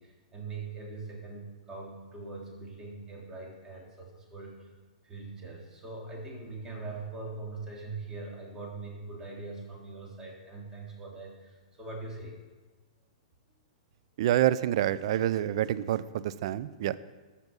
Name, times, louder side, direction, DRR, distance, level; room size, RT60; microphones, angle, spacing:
voice 1, 0.0-4.7 5.0-12.4, right 3 dB, 20° right, -2 dB, 3.5 m, -42 dB
voice 2, 14.2-17.0, right 12 dB, 60° right, 15 dB, 0.6 m, -27 dB
14.0 x 6.1 x 5.6 m, 1.3 s
hypercardioid pair, 120°, 3 cm